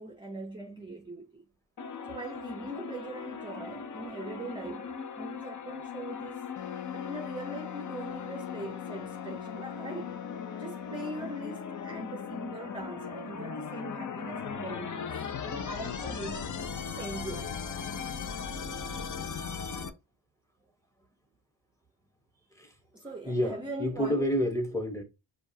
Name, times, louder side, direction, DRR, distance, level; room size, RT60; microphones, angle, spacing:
voice 1, 0.0-1.4 2.1-6.4 6.9-10.2 10.6-15.0 15.4-16.4 17.0-17.5 22.9-24.3, right 2 dB, 10° right, 0.6 m, -41 dB
sound 1, 1.8-19.9, left 6 dB, 45° left, 0.6 m, -38 dB
Wind instrument woodwind instrument, 6.6-13.0, left 12 dB, 85° left, 0.8 m, -44 dB
voice 2, 23.2-25.0, equal, 5° left, 1.1 m, -29 dB
6.8 x 2.4 x 2.7 m
wide cardioid pair, 155°, 42 cm